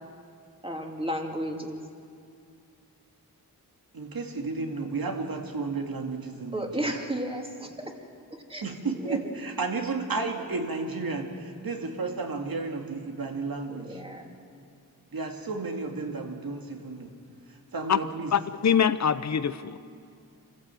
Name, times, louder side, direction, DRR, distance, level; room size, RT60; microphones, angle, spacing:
voice 1, 0.6-1.8 6.5-8.0 8.3-8.6 8.9-9.3 13.7-14.3, right 1 dB, 15° right, 2 dB, 2.5 m, -33 dB
voice 2, 3.9-6.9 8.6-14.0 15.1-17.1 17.7-18.3, right 3 dB, 65° right, 3 dB, 2.4 m, -32 dB
voice 3, 18.3-19.8, left 7 dB, 45° left, 13 dB, 0.7 m, -24 dB
26.5 x 15.5 x 7.7 m, 2.5 s
wide cardioid pair, 80°, 38 cm